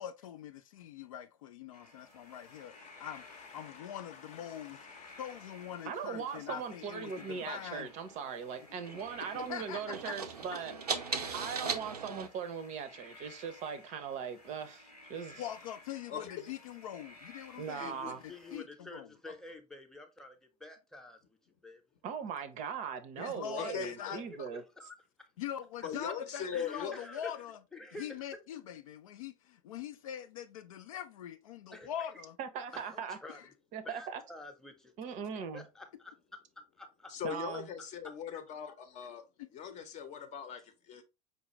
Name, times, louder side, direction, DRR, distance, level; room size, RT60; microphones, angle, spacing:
voice 1, 0.0-2.7 3.0-3.3 3.5-4.9 5.2-7.9 9.2-10.2 15.4-19.1 23.2-24.2 25.4-27.6 28.0-32.4 33.3-33.4 39.4-39.8, left 10 dB, 60° left, 0.4 m, -43 dB
sound 1, 1.7-18.6, left 2 dB, 90° left, 0.8 m, -56 dB
voice 2, 2.2-5.4 5.7-5.8 16.1-16.6 19.3-19.4 23.5-24.2 25.8-26.9 37.1-39.2 39.5-41.0, left 8 dB, 35° left, 0.7 m, -42 dB
sound 2, 5.6-12.3, right 5 dB, 85° right, 0.5 m, -41 dB
voice 3, 5.9-10.7 11.3-15.4 17.6-18.2 22.0-24.6 32.4-33.2 33.7-34.2 35.0-35.7 37.2-37.7, right 7 dB, 40° right, 0.6 m, -39 dB
voice 4, 17.8-21.4 21.6-21.8 24.3-25.3 26.5-27.3 27.7-28.3 31.7-32.1 32.7-33.4 33.8-34.9 35.5-36.1 36.8-37.1 38.3-38.4, left 2 dB, 5° left, 0.8 m, -49 dB
5.1 x 2.4 x 2.9 m
figure-of-eight pair, 80°, 19 cm